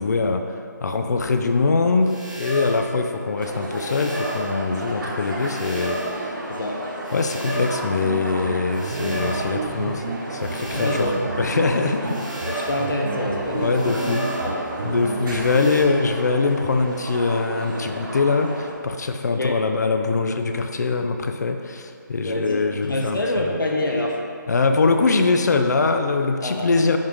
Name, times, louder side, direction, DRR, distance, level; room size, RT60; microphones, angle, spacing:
voice 1, 0.0-6.3 7.1-12.2 12.5-12.6 13.5-14.3 14.8-23.5 24.5-27.0, left 4 dB, 55° left, 6 dB, 0.6 m, -23 dB
sound 1, 2.0-2.9 3.7-4.5 5.4-6.2 7.0-7.9 8.7-9.5 10.4-11.2 12.0-12.9 13.7-14.5 15.4-15.8, right 2 dB, 5° right, 1.3 m, -33 dB
sound 2, 3.4-18.7, right 1 dB, 75° right, 1.7 m, -33 dB
sound 3, 8.0-16.0, right 4 dB, 60° right, 0.5 m, -32 dB
voice 2, 10.7-11.2 12.5-14.0 14.4-14.7 19.3-19.6 22.2-24.2 26.4-26.9, left 1 dB, 80° left, 0 dB, 1.0 m, -26 dB
10.5 x 3.9 x 3.5 m, 2.4 s
figure-of-eight pair, 155°, 11 cm